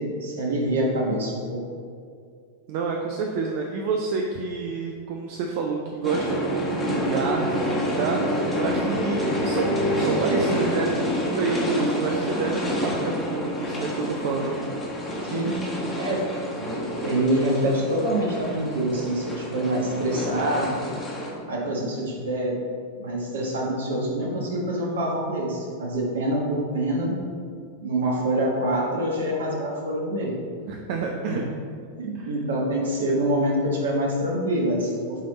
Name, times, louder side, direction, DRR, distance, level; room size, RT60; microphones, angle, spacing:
voice 1, 0.0-1.6 15.2-15.5 16.0-16.3 16.6-20.9 21.5-22.6 23.0-27.2 27.8-30.3 31.3-31.4 32.0-35.2, right 1 dB, 65° right, -2 dB, 1.3 m, -26 dB
voice 2, 2.7-14.6 30.7-31.4 32.1-32.3, right 4 dB, 50° right, 1 dB, 0.5 m, -29 dB
sound 1, 6.0-21.3, equal, 20° left, 1.4 m, -28 dB
7.4 x 3.4 x 4.0 m, 2.2 s
figure-of-eight pair, 90°, 0 cm